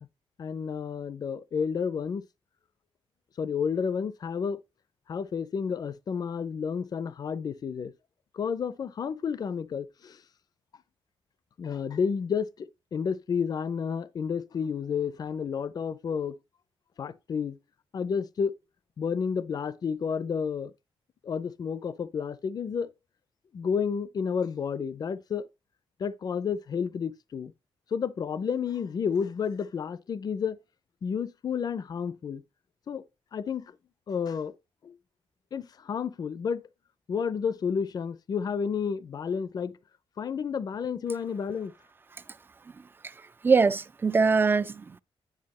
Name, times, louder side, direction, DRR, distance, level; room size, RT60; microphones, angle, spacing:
voice 1, 0.4-2.2 3.4-4.6 5.1-7.9 8.3-10.2 11.6-16.4 17.0-17.6 17.9-18.6 19.0-20.7 21.2-22.9 23.5-25.5 26.0-27.5 27.9-30.6 31.0-32.4 32.9-33.0 33.3-33.7 34.1-34.5 34.8-34.9 35.5-36.6 37.1-39.8 40.2-41.7, left 6 dB, 40° left, 0.5 m, -31 dB
voice 2, 42.8-45.0, right 4 dB, 20° right, 0.3 m, -24 dB
9.7 x 3.3 x 5.4 m
wide cardioid pair, 155°, 10 cm